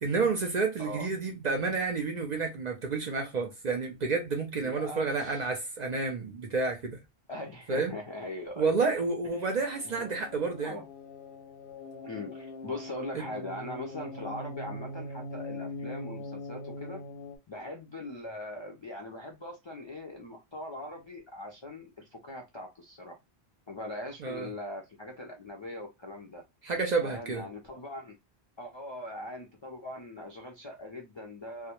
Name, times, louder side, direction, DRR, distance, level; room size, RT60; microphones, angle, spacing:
voice 1, 0.0-7.0 7.7-7.9 8.6-10.8 13.1-13.2 24.2-24.5 26.6-27.4, right 4 dB, 55° right, 0.5 m, -30 dB
voice 2, 4.6-5.5 7.3-8.7 9.3-10.1 10.6-10.9 12.0-17.0 17.5-23.2 23.7-26.4 27.0-28.2 28.6-31.7, left 1 dB, 50° left, 0.3 m, -41 dB
sound 1, 8.1-17.4, left 2 dB, 90° left, 0.9 m, -43 dB
2.1 x 2.1 x 2.9 m
omnidirectional pair, 1.1 m